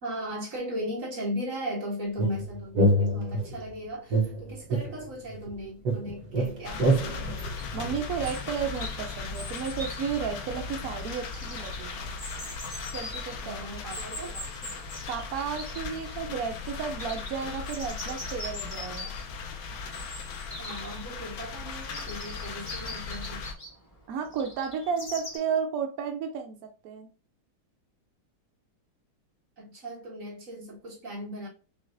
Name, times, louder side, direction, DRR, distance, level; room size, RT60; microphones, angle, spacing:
voice 1, 0.0-7.4 13.4-14.3 20.6-23.4 29.6-31.5, equal, 40° right, 2.1 m, -37 dB
sound 1, 2.2-3.7 4.1-5.5 5.9-8.4, right 1 dB, 60° right, 1.3 m, -26 dB
sound 2, 6.6-23.5, left 5 dB, 80° left, 1.4 m, -38 dB
voice 2, 7.7-12.1 12.9-14.7 15.1-19.1 24.1-27.1, right 6 dB, 75° right, 0.8 m, -33 dB
Chirp tweet, 8.7-25.4, left 1 dB, 25° left, 0.8 m, -43 dB
6.0 x 2.5 x 2.5 m
omnidirectional pair, 2.2 m